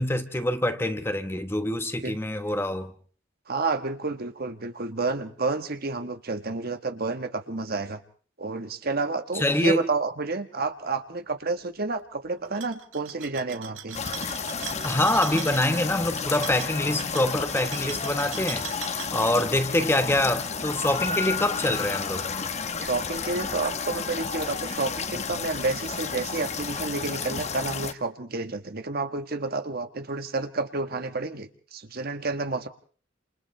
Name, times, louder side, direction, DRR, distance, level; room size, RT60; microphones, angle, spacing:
voice 1, 0.0-2.9 9.3-9.8 14.8-18.7 19.1-22.3, left 1 dB, 10° left, 1.1 m, -25 dB
voice 2, 3.5-8.0 8.4-14.0 22.8-32.7, right 3 dB, 50° right, 1.3 m, -30 dB
sound 1, 12.4-19.5, right 9 dB, 75° right, 1.8 m, -40 dB
sound 2, 13.9-27.9, left 5 dB, 35° left, 1.1 m, -32 dB
29.5 x 27.5 x 3.3 m
head